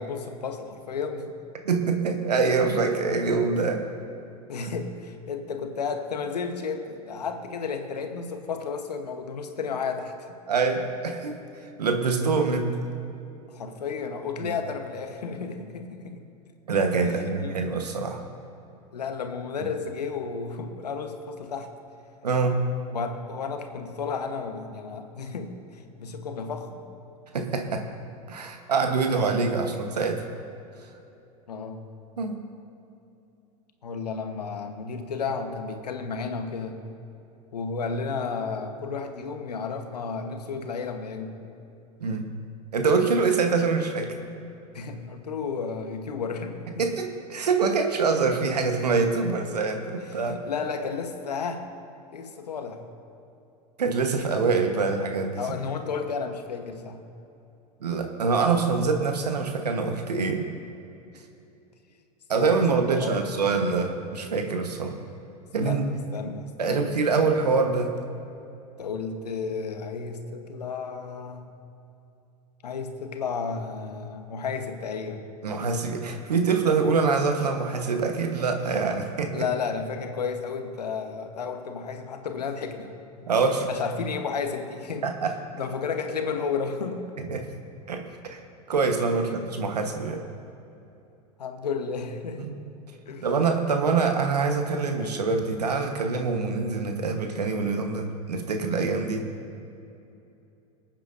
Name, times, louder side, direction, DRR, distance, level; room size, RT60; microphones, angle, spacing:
voice 1, 0.0-1.3 4.5-10.3 13.5-16.2 17.0-17.6 18.9-21.7 22.9-26.8 31.5-31.9 33.8-36.8 37.5-41.4 44.7-46.9 50.0-51.6 52.1-52.9 55.4-57.0 62.4-63.2 65.6-67.3 68.8-71.5 72.6-75.3 79.3-82.9 83.6-85.1 85.5-87.1 89.1-89.4 91.4-92.5 93.1-93.3, left 5 dB, 85° left, 6 dB, 1.1 m, -32 dB
voice 2, 1.6-3.8 10.5-11.4 11.8-12.8 14.4-14.5 16.7-18.2 22.2-22.6 27.3-27.8 28.3-30.2 32.2-32.4 42.0-42.3 42.7-44.1 46.8-50.4 53.8-55.6 57.8-60.5 62.3-65.0 65.5-65.8 66.6-68.0 75.4-79.3 83.2-83.7 85.0-85.3 87.2-87.4 87.9-88.0 88.3-88.4 88.7-90.2 92.4-92.5 93.2-99.2, right 4 dB, 90° right, 5 dB, 1.2 m, -25 dB
24.5 x 9.0 x 2.6 m, 2.8 s
hypercardioid pair, 90°, 20 cm